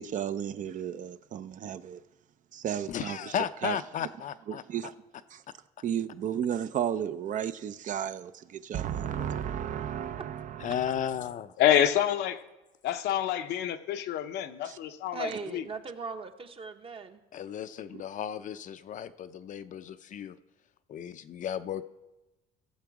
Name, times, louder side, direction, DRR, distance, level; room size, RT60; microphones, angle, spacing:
voice 1, 0.0-2.0 2.5-3.2 3.6-3.8 4.5-4.9 5.3-5.4 5.8-10.8 14.6-14.8, right 9 dB, 50° right, 0.5 m, -33 dB
voice 2, 2.9-4.6 10.6-11.5 17.3-20.4 20.9-21.9, left 9 dB, 50° left, 0.5 m, -34 dB
voice 3, 11.6-12.4 12.8-15.6, left 10 dB, 80° left, 0.8 m, -27 dB
voice 4, 15.1-17.2, right 5 dB, 35° right, 0.9 m, -39 dB
15.0 x 7.0 x 4.7 m
cardioid pair, 110°, 17 cm